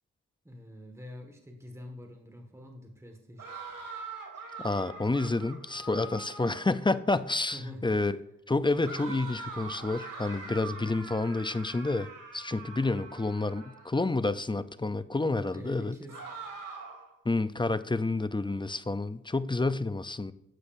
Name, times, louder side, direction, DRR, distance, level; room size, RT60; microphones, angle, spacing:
voice 1, 0.4-3.5 7.5-7.8 9.7-9.8 15.5-16.2, left 1 dB, 10° right, 2 dB, 1.7 m, -45 dB
sound 1, 3.4-6.8 8.8-14.1 16.1-17.1, right 4 dB, 75° right, 2.2 m, -43 dB
voice 2, 4.6-8.2 8.5-12.1 12.3-15.9 17.3-20.3, left 2 dB, 15° left, 14 dB, 0.5 m, -29 dB
12.0 x 8.3 x 2.6 m, 0.80 s
cardioid pair, 70°, 33 cm